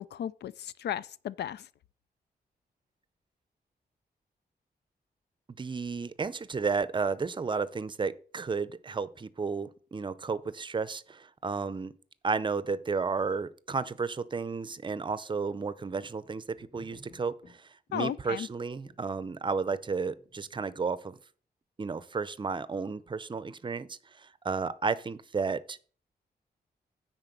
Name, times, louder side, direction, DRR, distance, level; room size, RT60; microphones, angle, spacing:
voice 1, 0.0-1.6 17.9-18.5, left 10 dB, 90° left, 0.4 m, -35 dB
voice 2, 5.6-11.9 12.2-21.2 21.8-25.8, right 4 dB, 30° right, 0.5 m, -33 dB
sound 1, 16.6-17.6 18.3-18.4 18.9-20.9, equal, 75° left, 3.9 m, -56 dB
9.8 x 4.2 x 6.6 m
wide cardioid pair, 145°, 17 cm